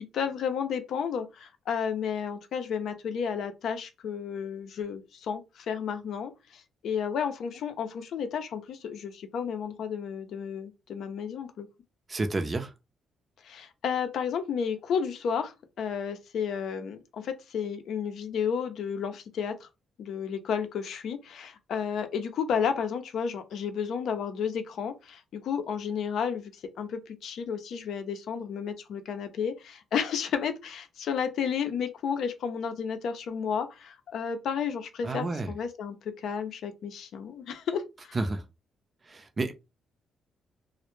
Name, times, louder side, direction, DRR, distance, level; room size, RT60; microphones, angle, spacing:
voice 1, 0.0-11.7 13.4-19.7 20.0-38.2, left 7 dB, 70° left, 0.5 m, -32 dB
voice 2, 12.1-12.7 35.0-35.5 38.1-38.4 39.0-39.5, right 2 dB, 30° right, 0.5 m, -30 dB
2.1 x 2.0 x 3.0 m
cardioid pair, 90°, 0 cm